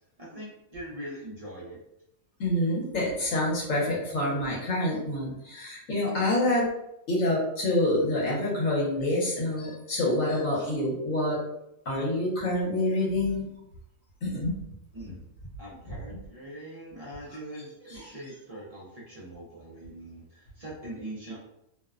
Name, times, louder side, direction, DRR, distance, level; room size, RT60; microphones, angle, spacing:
voice 1, 0.2-1.8 14.9-15.2 15.6-21.4, right 1 dB, 60° right, -6 dB, 0.4 m, -42 dB
voice 2, 2.4-6.7 7.1-11.4 11.9-13.4 14.2-14.6 17.9-18.1, left 1 dB, 70° left, -4 dB, 1.2 m, -27 dB
2.7 x 2.1 x 2.4 m, 0.81 s
omnidirectional pair, 1.4 m